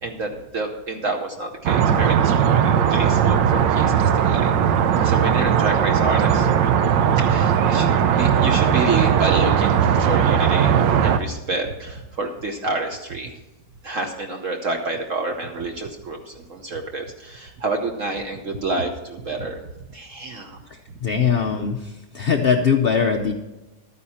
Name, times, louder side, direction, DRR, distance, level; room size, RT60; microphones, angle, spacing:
voice 1, 0.0-4.5 5.0-6.6 7.2-7.9 8.2-13.3 13.8-19.6 19.9-20.6, right 3 dB, 55° right, 3 dB, 1.1 m, -28 dB
sound 1, 1.6-11.2, right 8 dB, 85° right, 1.4 m, -18 dB
voice 2, 21.0-23.3, left 6 dB, 65° left, 3 dB, 0.6 m, -21 dB
12.5 x 9.6 x 4.2 m, 1.1 s
omnidirectional pair, 1.9 m